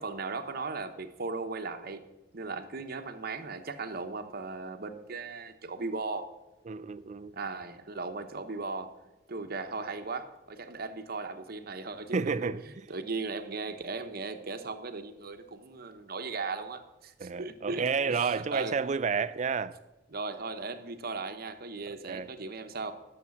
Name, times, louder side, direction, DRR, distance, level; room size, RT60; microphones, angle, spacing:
voice 1, 0.0-2.1 2.3-6.3 7.3-8.9 9.3-12.5 12.9-18.7 20.1-22.9, right 3 dB, 55° right, 1.0 m, -37 dB
voice 2, 6.7-7.3 12.1-12.6 17.2-19.7 22.1-22.3, right 5 dB, 40° right, 0.4 m, -30 dB
12.0 x 6.9 x 7.2 m
head